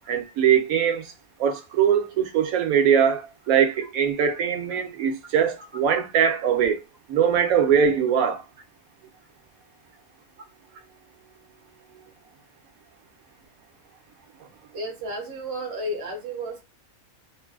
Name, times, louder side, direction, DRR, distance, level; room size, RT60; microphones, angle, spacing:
voice 1, 0.1-1.1 1.4-6.8 7.1-8.4, right 8 dB, 75° right, 1.1 m, -21 dB
voice 2, 14.7-16.6, right 1 dB, 55° right, 0.9 m, -32 dB
3.2 x 2.2 x 2.3 m
omnidirectional pair, 1.5 m